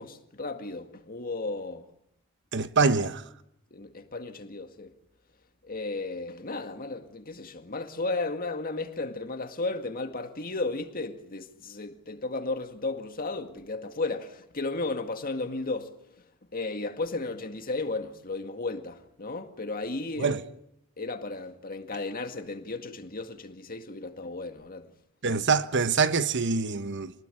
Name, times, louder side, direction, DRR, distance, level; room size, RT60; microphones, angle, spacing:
voice 1, 0.0-1.9 3.7-4.9 5.7-15.9 16.5-20.3 21.0-24.9, left 3 dB, 45° left, 2.1 m, -34 dB
voice 2, 2.5-3.2 20.2-20.4 25.2-27.1, right 4 dB, 55° right, 1.1 m, -25 dB
27.5 x 19.5 x 9.9 m
head